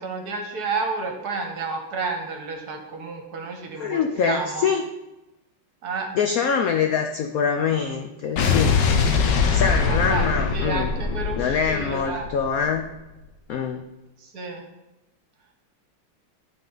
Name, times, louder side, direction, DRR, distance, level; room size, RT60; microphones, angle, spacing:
voice 1, 0.0-4.7 5.8-6.1 9.9-12.3 14.2-14.6, right 4 dB, 60° right, 3 dB, 1.3 m, -31 dB
voice 2, 3.8-4.8 6.1-8.8 9.5-10.9 11.3-12.9 13.5-13.8, left 6 dB, 85° left, 5 dB, 0.7 m, -24 dB
Explosion, 8.4-12.7, left 5 dB, 70° left, 1.3 m, -22 dB
11.5 x 4.1 x 3.9 m, 0.99 s
omnidirectional pair, 2.2 m